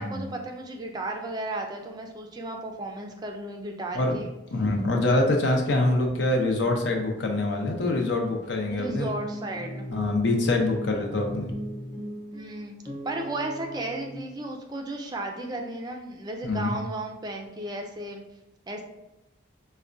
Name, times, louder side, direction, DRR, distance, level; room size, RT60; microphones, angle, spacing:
voice 1, 0.0-4.3 8.7-9.9 12.3-12.7 13.0-18.2 18.7-18.8, right 2 dB, 20° right, 2 dB, 0.3 m, -34 dB
voice 2, 4.5-9.1 9.9-11.5 16.4-16.7, left 2 dB, 70° left, 1 dB, 0.6 m, -25 dB
sound 1, 8.7-14.2, right 1 dB, 15° left, 0.8 m, -38 dB
4.7 x 2.1 x 2.5 m, 0.96 s
head